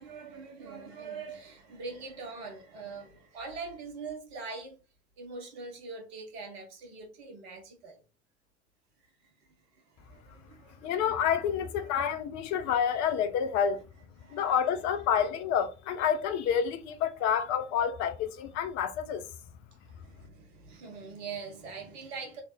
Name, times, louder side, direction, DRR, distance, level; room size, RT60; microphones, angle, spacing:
voice 1, 0.0-4.8 5.2-8.0 9.7-11.3 11.8-12.1 14.2-14.5 19.8-22.4, right 4 dB, 65° right, 1.6 m, -43 dB
voice 2, 10.8-13.8 14.3-19.2, left 8 dB, 55° left, 0.8 m, -28 dB
3.6 x 3.3 x 4.1 m
figure-of-eight pair, 55°, 33 cm